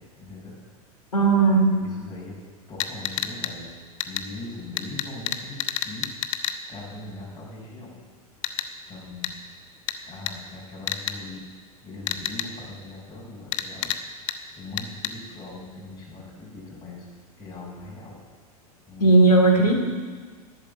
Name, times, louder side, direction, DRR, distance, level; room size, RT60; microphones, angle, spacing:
voice 1, 0.2-0.5 1.2-2.3 2.7-3.7 4.1-5.6 5.8-6.0 6.7-7.9 8.9-9.4 10.0-11.4 11.8-13.9 14.6-17.0 17.4-18.2 18.9-19.1, left 2 dB, 20° left, -5 dB, 6.0 m, -40 dB
voice 2, 1.1-1.7 19.0-19.7, right 3 dB, 80° left, 1 dB, 3.1 m, -16 dB
sound 1, 2.8-3.5 4.0-4.2 4.8-6.6 8.4-8.7 9.2-9.3 9.9-10.0 10.3-10.4 10.9-11.1 12.1-12.5 13.5-14.0 14.3-14.4 14.8-15.1, left 12 dB, 55° left, 1.1 m, -28 dB
12.5 x 11.5 x 8.2 m, 1.5 s
figure-of-eight pair, 90°, 20 cm